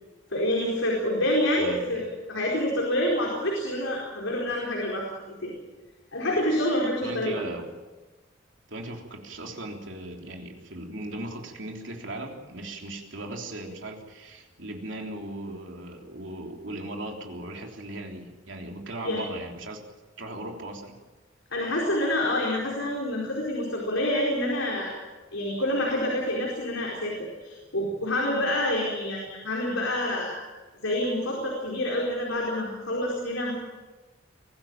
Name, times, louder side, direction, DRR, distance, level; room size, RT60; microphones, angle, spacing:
voice 1, 0.3-5.1 5.4-5.5 6.1-7.4 19.0-19.2 21.5-24.9 25.3-30.4 30.8-33.5, left 1 dB, 85° left, -2 dB, 4.7 m, -27 dB
voice 2, 1.6-2.1 7.0-7.7 8.7-19.8 20.2-21.0, right 1 dB, 70° right, 2 dB, 3.5 m, -38 dB
23.0 x 15.5 x 9.0 m, 1.3 s
head